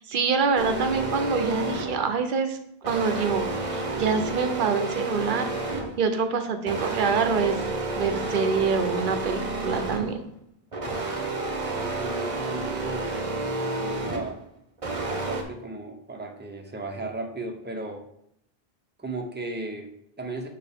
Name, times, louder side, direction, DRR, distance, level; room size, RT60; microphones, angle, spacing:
voice 1, 0.0-2.6 2.9-5.5 6.0-7.6 7.9-10.2, right 5 dB, 55° right, 7 dB, 0.9 m, -25 dB
sound 1, 0.6-2.1 2.8-6.1 6.7-10.2 10.7-14.4 14.8-15.4, right 2 dB, 35° right, 0.9 m, -30 dB
voice 2, 11.6-13.2 13.6-14.4 15.0-18.0 19.0-20.5, right 2 dB, 10° right, 3 dB, 0.7 m, -36 dB
6.7 x 5.5 x 3.5 m, 0.77 s
omnidirectional pair, 1.0 m